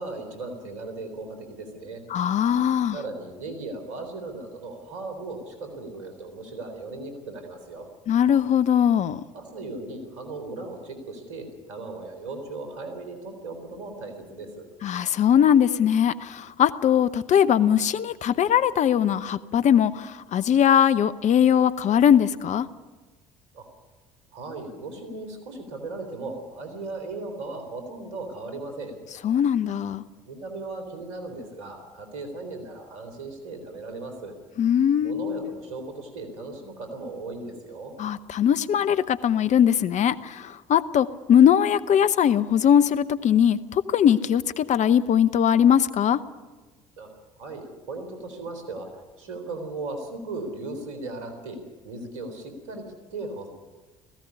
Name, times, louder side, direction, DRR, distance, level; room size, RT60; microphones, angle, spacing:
voice 1, 0.0-2.0 2.9-7.9 9.3-14.7 23.5-23.7 24.3-28.9 30.3-34.3 35.0-37.9 47.0-47.1 47.4-51.6 51.8-52.8 53.1-53.5, right 3 dB, 75° right, 6 dB, 3.8 m, -37 dB
voice 2, 2.1-3.0 8.1-9.2 14.8-22.7 29.2-30.0 34.6-35.6 38.0-46.2, left 9 dB, 45° left, 14 dB, 0.8 m, -21 dB
18.0 x 15.5 x 9.7 m, 1.2 s
hypercardioid pair, 60°, 17 cm